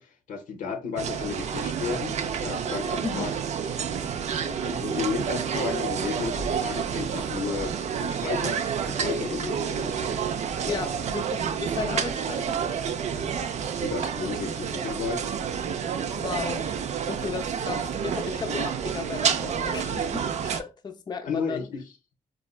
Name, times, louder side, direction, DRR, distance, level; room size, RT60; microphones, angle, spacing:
voice 1, 0.0-3.3 4.4-10.2 10.6-10.9 13.7-15.3 21.3-21.8, left 5 dB, 75° left, 0.6 m, -33 dB
sound 1, 1.0-20.6, right 7 dB, 55° right, 0.4 m, -29 dB
voice 2, 10.7-12.6 16.2-16.7 17.1-21.7, left 5 dB, 30° left, 0.4 m, -35 dB
4.1 x 2.3 x 2.3 m
supercardioid pair, 50°, 14 cm